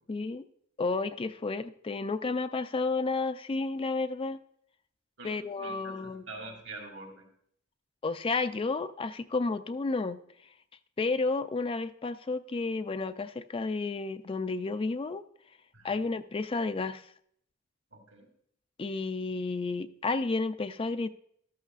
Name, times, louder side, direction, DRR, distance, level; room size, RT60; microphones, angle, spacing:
voice 1, 0.1-0.4 0.8-4.4 5.2-6.3 8.0-10.2 11.0-15.2 15.8-17.1 18.8-21.1, left 3 dB, 25° left, 11 dB, 0.4 m, -31 dB
voice 2, 5.2-7.2 15.7-16.0 17.9-18.3, right 3 dB, 85° right, 2 dB, 2.8 m, -45 dB
13.5 x 12.5 x 2.4 m, 0.68 s
head